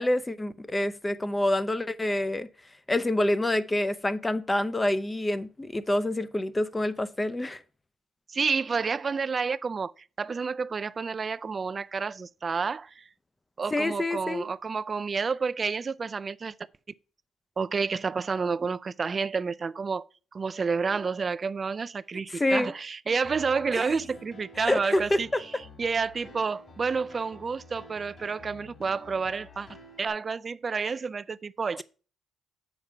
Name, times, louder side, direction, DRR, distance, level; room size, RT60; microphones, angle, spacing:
voice 1, 0.0-2.5 2.9-7.6 13.7-14.4 22.3-22.7 23.7-23.9 24.7-25.4, left 1 dB, 15° left, 0.6 m, -27 dB
voice 2, 8.3-13.0 13.6-16.5 17.6-29.7 30.0-31.8, right 5 dB, 35° right, 0.4 m, -30 dB
Piano, 23.2-30.1, left 2 dB, 50° left, 2.8 m, -50 dB
7.2 x 5.0 x 5.4 m
cardioid pair, 90°, 0 cm